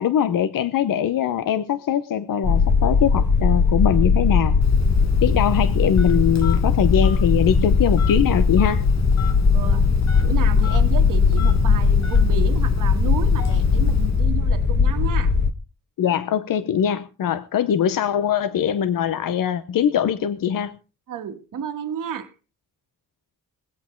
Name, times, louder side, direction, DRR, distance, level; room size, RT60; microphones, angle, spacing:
voice 1, 0.0-4.5 5.2-8.8 16.0-20.8, left 9 dB, 85° left, 0.8 m, -22 dB
sound 1, 2.4-15.5, left 5 dB, 30° left, 1.1 m, -19 dB
Telephone, 4.6-14.3, left 7 dB, 55° left, 1.2 m, -29 dB
voice 2, 9.5-9.9 10.2-15.3 21.1-22.3, right 8 dB, 75° right, 1.5 m, -31 dB
21.0 x 8.3 x 4.4 m
cardioid pair, 95°, 32 cm